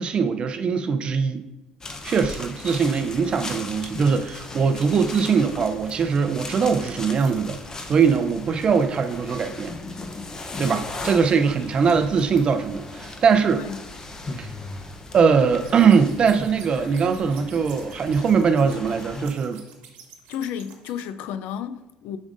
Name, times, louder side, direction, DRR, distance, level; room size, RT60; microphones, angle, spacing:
voice 1, 0.0-1.4 2.0-7.6 7.9-9.7 10.6-13.7 14.4-14.5 15.1-19.6, right 6 dB, 40° right, 0.6 m, -21 dB
sound 1, 1.8-19.3, left 2 dB, 25° left, 0.7 m, -37 dB
sound 2, 15.6-21.0, right 7 dB, 85° right, 1.1 m, -48 dB
voice 2, 20.3-22.2, left 9 dB, 80° left, 0.4 m, -32 dB
7.1 x 5.2 x 2.5 m
cardioid pair, 100°, 2 cm